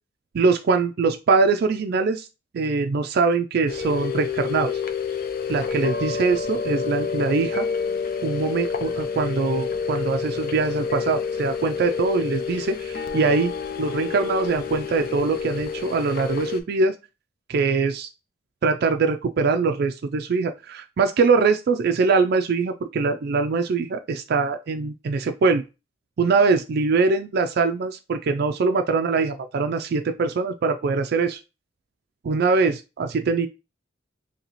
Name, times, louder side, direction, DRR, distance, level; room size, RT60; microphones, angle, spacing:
voice 1, 0.3-2.3 2.5-4.8 5.5-7.7 8.2-13.5 13.8-16.9 17.5-18.1 18.6-25.6 26.2-31.4 32.2-33.5, right 4 dB, 55° right, 6 dB, 0.4 m, -22 dB
sound 1, 3.7-16.6, left 6 dB, 50° left, 0.5 m, -28 dB
3.0 x 2.8 x 4.0 m, 0.28 s
head